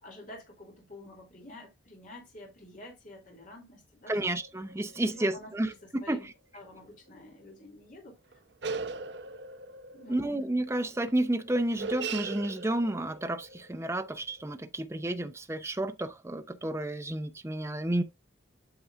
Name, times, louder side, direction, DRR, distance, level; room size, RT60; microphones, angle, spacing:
voice 1, 0.0-4.2 5.0-6.3 6.5-8.2 9.9-10.4, left 1 dB, 45° left, 2.7 m, -49 dB
voice 2, 4.1-6.2 10.1-18.0, right 1 dB, 15° right, 0.6 m, -31 dB
sound 1, 4.3-6.0 6.6-6.8 7.2-7.3 8.3-14.6, right 4 dB, 65° right, 0.7 m, -41 dB
8.7 x 6.9 x 2.4 m
head